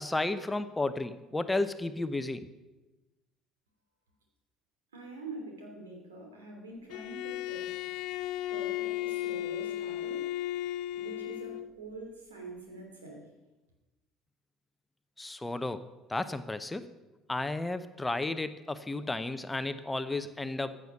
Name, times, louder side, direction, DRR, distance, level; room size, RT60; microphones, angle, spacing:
voice 1, 0.0-2.4 15.2-15.8 16.1-16.9 17.3-20.8, left 2 dB, 15° left, 11 dB, 0.8 m, -33 dB
voice 2, 4.9-7.8 8.5-10.3 10.9-13.3, right 2 dB, 80° right, 1 dB, 2.9 m, -45 dB
Bowed string instrument, 6.9-11.7, left 14 dB, 60° left, 0.4 m, -35 dB
15.0 x 8.7 x 5.7 m, 1.1 s
figure-of-eight pair, 60°, 0 cm